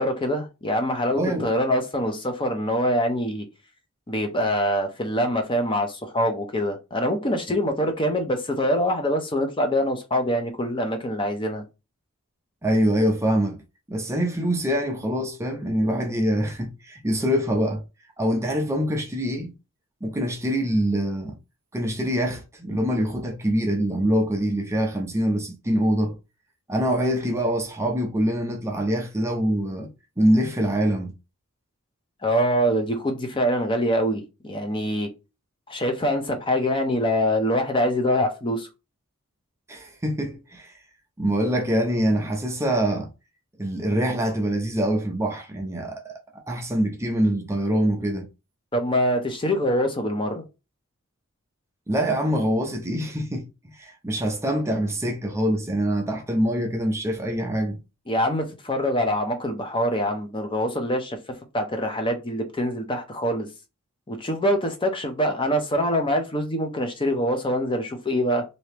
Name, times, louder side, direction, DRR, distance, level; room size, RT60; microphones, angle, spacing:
voice 1, 0.0-3.5 4.1-11.6 32.2-35.1 35.7-38.7 48.7-50.4 58.1-61.2 61.5-63.5 64.1-68.4, equal, 25° left, 0.7 m, -24 dB
voice 2, 1.1-1.5 12.6-13.6 13.9-17.8 18.2-19.5 20.0-21.4 21.7-26.2 26.7-31.1 39.7-40.8 41.2-43.1 43.6-48.3 51.9-57.8, equal, 15° right, 0.5 m, -24 dB
2.9 x 2.7 x 3.3 m
head